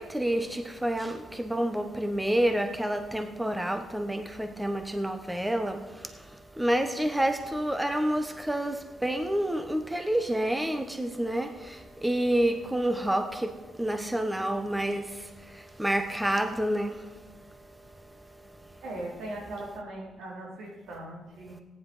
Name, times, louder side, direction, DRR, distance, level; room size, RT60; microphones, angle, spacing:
voice 1, 0.0-5.8 6.6-11.5 12.0-13.5 13.8-15.0 15.8-16.9, right 1 dB, 10° right, 1.0 m, -28 dB
voice 2, 18.8-21.6, right 1 dB, 85° right, 4.3 m, -39 dB
15.0 x 9.9 x 5.7 m
cardioid pair, 90°, 0 cm